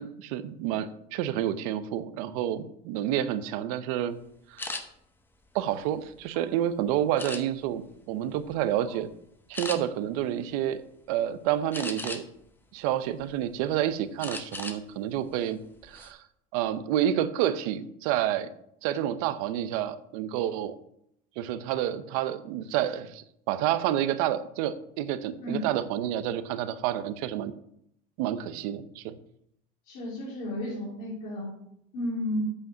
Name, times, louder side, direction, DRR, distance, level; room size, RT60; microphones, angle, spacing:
voice 1, 0.0-4.2 4.5-4.8 5.5-9.1 9.5-10.8 11.1-12.2 12.7-16.2 16.5-18.5 18.8-20.8 21.4-27.5 28.2-29.2, right 11 dB, 90° right, 13 dB, 0.7 m, -29 dB
sound 1, 4.6-4.8 5.5-6.4 7.2-7.8 8.3-8.5 8.9-9.0 9.5-9.8 11.7-12.4 12.9-13.7 14.2-14.8 15.1-15.3 15.7-16.1, left 3 dB, 10° left, 0.8 m, -37 dB
voice 2, 29.9-31.5 31.9-32.5, equal, 70° left, -6 dB, 3.7 m, -32 dB
8.5 x 5.2 x 6.2 m, 0.74 s
cardioid pair, 155°, 18 cm